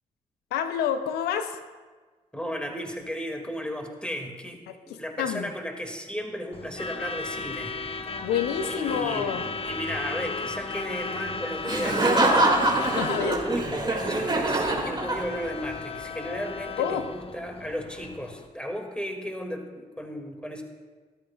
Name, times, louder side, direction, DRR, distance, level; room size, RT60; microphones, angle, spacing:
voice 1, 0.5-1.6 4.7-5.5 8.2-9.4 12.8-13.4 16.8-17.0, left 8 dB, 85° left, 9 dB, 0.5 m, -28 dB
voice 2, 2.3-4.6 4.9-7.8 8.0-8.3 8.7-12.5 13.2-20.6, equal, 5° left, 3 dB, 2.1 m, -35 dB
Truck / Alarm, 6.5-18.5, left 4 dB, 35° left, 0.7 m, -35 dB
Laughter, 11.6-15.6, right 2 dB, 30° right, 2.2 m, -24 dB
13.0 x 13.0 x 2.3 m, 1.3 s
hypercardioid pair, 45°, 16 cm